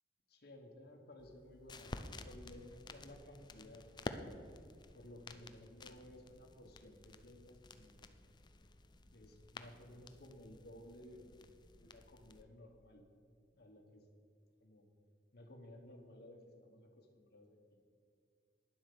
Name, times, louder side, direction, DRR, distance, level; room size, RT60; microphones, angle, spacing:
voice 1, 0.3-4.3 4.9-8.2 9.1-13.0 13.5-14.0 14.6-14.8 15.3-17.6, left 1 dB, 65° left, 2 dB, 1.4 m, -56 dB
sound 1, 1.2-12.4, left 2 dB, 25° left, 0.5 m, -52 dB
10.0 x 7.8 x 6.9 m, 2.3 s
head